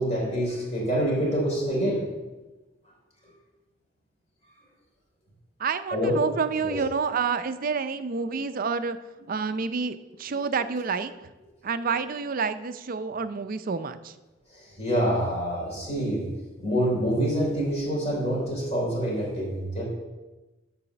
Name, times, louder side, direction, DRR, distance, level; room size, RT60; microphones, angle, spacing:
voice 1, 0.0-2.1 5.9-6.2 6.6-6.8 14.5-16.3 16.6-19.8, equal, 35° left, -4 dB, 3.4 m, -26 dB
voice 2, 5.6-9.0 9.3-11.3 11.6-14.1, right 5 dB, 45° right, 11 dB, 0.5 m, -28 dB
11.0 x 4.1 x 6.7 m, 1.1 s
head